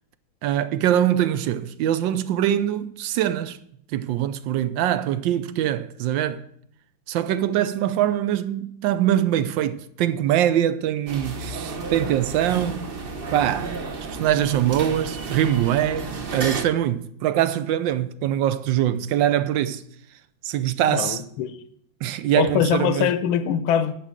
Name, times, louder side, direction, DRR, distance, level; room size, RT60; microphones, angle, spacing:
voice 1, 0.4-3.6 3.9-6.4 7.1-12.9 13.3-13.8 14.1-19.8 20.4-21.2 22.0-23.1, right 11 dB, 75° right, 1.3 m, -23 dB
sound 1, 11.1-16.6, right 3 dB, 45° right, 0.7 m, -32 dB
voice 2, 20.9-21.6 22.4-24.0, left 9 dB, 80° left, 1.5 m, -23 dB
10.0 x 6.2 x 7.4 m
omnidirectional pair, 2.2 m